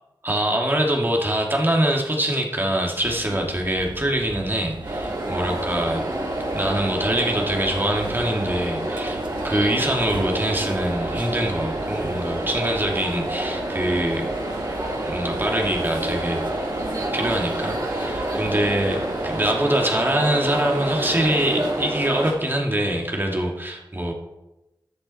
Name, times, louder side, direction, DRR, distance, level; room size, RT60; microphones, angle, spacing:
voice 1, 0.2-6.1 6.5-14.3 15.0-16.4 17.1-24.1, right 1 dB, 25° right, 0 dB, 2.4 m, -24 dB
sound 1, 3.0-19.4, right 3 dB, 75° right, 1.0 m, -39 dB
sound 2, 4.8-22.3, right 1 dB, 55° right, 4.8 m, -28 dB
13.5 x 7.8 x 4.3 m, 0.96 s
wide cardioid pair, 60°, 8 cm